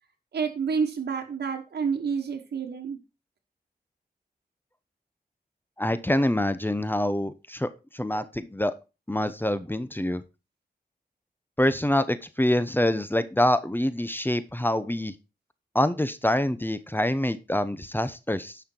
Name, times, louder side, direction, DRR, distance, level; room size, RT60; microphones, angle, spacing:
voice 1, 0.3-3.0, right 6 dB, 90° right, 3 dB, 1.4 m, -29 dB
voice 2, 5.8-7.7 7.9-8.7 9.1-10.2 11.6-15.1 15.7-18.6, left 1 dB, 10° left, 13 dB, 1.0 m, -25 dB
10.5 x 5.8 x 4.5 m, 0.28 s
cardioid pair, 65°, 17 cm